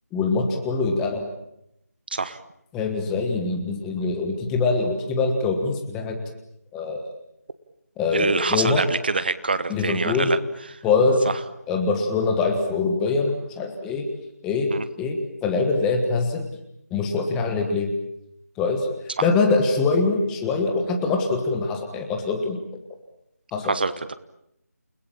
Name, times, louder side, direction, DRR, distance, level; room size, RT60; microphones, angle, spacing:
voice 1, 0.1-1.3 2.7-6.2 6.7-7.0 8.0-8.8 9.7-10.3 10.8-11.2 11.7-14.1 14.4-16.5 16.9-17.9 18.6-18.9 19.2-22.6 23.5-23.7, left 3 dB, 5° left, 4 dB, 1.4 m, -23 dB
voice 2, 8.1-10.4 14.7-14.8 23.6-24.1, right 4 dB, 35° right, 14 dB, 1.3 m, -25 dB
29.5 x 19.5 x 8.8 m, 0.79 s
figure-of-eight pair, 170°, 9 cm